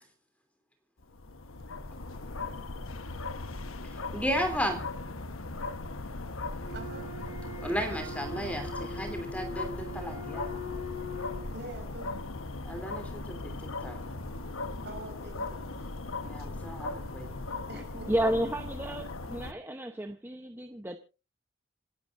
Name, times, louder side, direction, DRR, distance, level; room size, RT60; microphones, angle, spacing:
sound 1, 1.0-19.5, left 2 dB, 85° left, 1.1 m, -38 dB
voice 1, 4.1-4.8 7.6-10.6 12.6-13.6 13.8-14.2 16.2-17.4, equal, 5° left, 5 dB, 3.0 m, -34 dB
Wind instrument woodwind instrument, 6.6-11.5, left 1 dB, 35° left, 3.0 m, -42 dB
voice 2, 6.7-7.1 11.5-12.1 14.8-16.0 17.7-18.1 18.4-18.5, right 2 dB, 50° right, 5 dB, 5.6 m, -45 dB
voice 3, 18.1-21.0, right 1 dB, 10° right, 6 dB, 0.8 m, -32 dB
27.5 x 12.0 x 2.6 m, 0.32 s
head